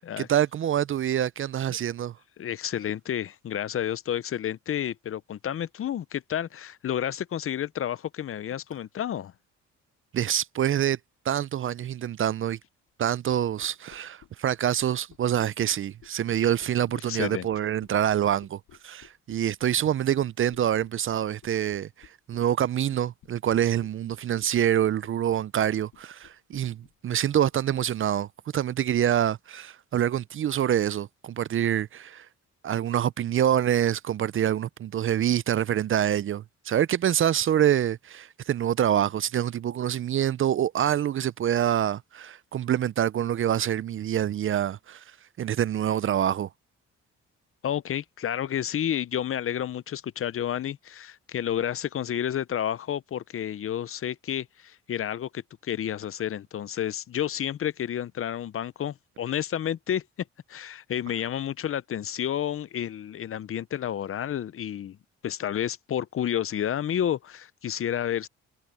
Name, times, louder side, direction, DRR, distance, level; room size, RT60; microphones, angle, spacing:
voice 1, 0.2-2.1 10.1-11.0 11.3-12.6 13.0-28.3 28.5-32.3 32.6-45.0 45.4-46.5, right 10 dB, 45° right, 0.5 m, -26 dB
voice 2, 2.4-9.3 17.1-17.5 47.6-60.0 60.5-65.0 65.2-68.3, left 10 dB, 45° left, 0.6 m, -30 dB
sound 1, 13.6-28.1, left 11 dB, 70° left, 5.5 m, -54 dB
cardioid pair, 90°, 30 cm